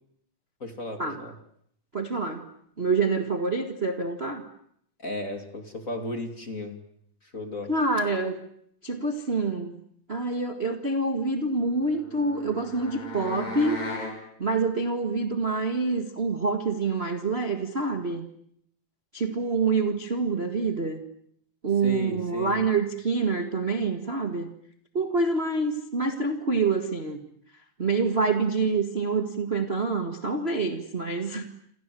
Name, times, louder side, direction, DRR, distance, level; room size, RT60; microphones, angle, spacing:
voice 1, 0.6-1.3 5.0-6.8 7.2-7.7 21.8-22.6, left 1 dB, 25° left, 6 dB, 2.6 m, -34 dB
voice 2, 1.9-2.4 2.8-4.4 7.7-8.4 8.8-9.7 10.1-13.8 14.4-18.3 19.1-21.0 21.6-24.5 24.9-27.2 27.8-31.4, right 3 dB, 25° right, 5 dB, 1.6 m, -26 dB
sound 1, 11.6-14.2, left 2 dB, 70° left, 7.8 m, -37 dB
28.5 x 27.0 x 7.7 m, 0.71 s
omnidirectional pair, 3.5 m